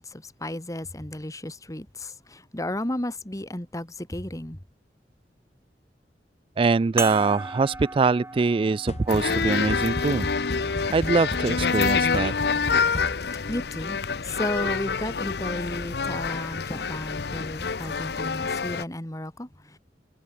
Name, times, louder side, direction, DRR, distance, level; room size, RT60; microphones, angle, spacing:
voice 1, 0.0-4.6 13.5-19.8, left 1 dB, 20° left, 1.8 m, -34 dB
voice 2, 6.6-10.3 10.9-12.3, right 4 dB, 30° right, 0.3 m, -23 dB
sound 1, 7.0-11.8 12.6-12.7 14.8-14.9, right 3 dB, 15° right, 1.5 m, -38 dB
sound 2, 8.9-13.5, left 1 dB, 40° left, 1.4 m, -35 dB
sound 3, 9.1-18.8, left 5 dB, 65° left, 0.7 m, -27 dB
head